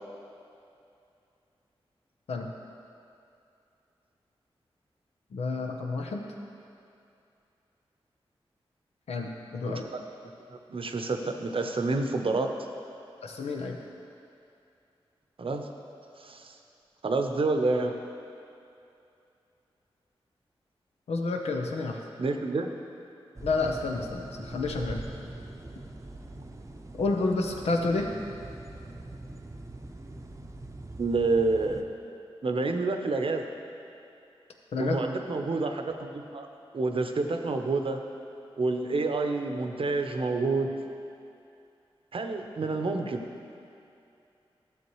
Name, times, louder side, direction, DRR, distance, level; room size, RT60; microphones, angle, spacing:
voice 1, 5.3-6.2 9.1-9.9 13.2-13.8 21.1-22.0 23.4-25.0 26.9-28.1 34.7-35.0, left 3 dB, 90° left, 2 dB, 0.7 m, -30 dB
voice 2, 9.6-10.0 10.5-12.5 15.4-15.7 16.2-16.6 17.0-17.9 22.2-22.7 31.0-31.8 32.4-33.5 34.8-36.5 36.7-38.0 38.6-40.7 42.1-43.2, right 3 dB, 60° right, 5 dB, 0.8 m, -28 dB
sound 1, 23.4-31.8, right 2 dB, 30° right, 0.7 m, -43 dB
12.5 x 6.9 x 3.1 m, 2.7 s
cardioid pair, 45°, 10 cm